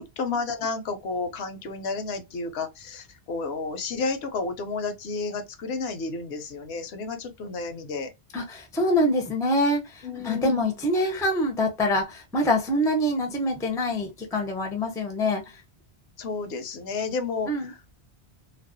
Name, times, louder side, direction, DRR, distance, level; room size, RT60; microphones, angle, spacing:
voice 1, 0.0-8.1 10.0-10.8 16.2-17.9, left 4 dB, 75° left, 0.8 m, -31 dB
voice 2, 8.3-15.4 17.5-17.7, left 1 dB, 5° left, 0.4 m, -25 dB
2.4 x 2.1 x 2.5 m
omnidirectional pair, 1.1 m